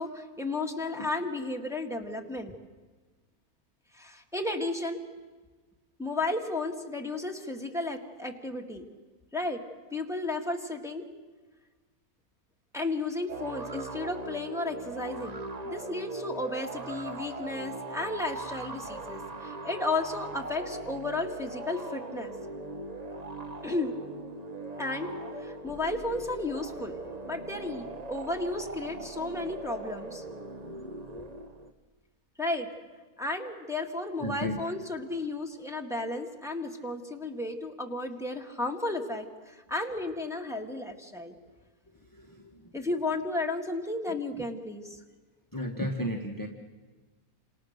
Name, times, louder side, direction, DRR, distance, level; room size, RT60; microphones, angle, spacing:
voice 1, 0.0-2.5 3.9-5.0 6.0-8.9 9.3-9.6 9.9-11.1 12.7-22.3 23.6-23.9 24.8-26.9 27.2-30.2 32.4-32.7 33.2-41.4 42.7-45.0, left 2 dB, ahead, 2 dB, 1.8 m, -33 dB
sound 1, 13.3-31.7, right 2 dB, 30° right, 1.1 m, -40 dB
voice 2, 34.2-34.6 42.0-42.7 45.5-46.5, equal, 15° left, 1 dB, 1.4 m, -34 dB
29.5 x 27.0 x 6.6 m, 1.3 s
omnidirectional pair, 1.6 m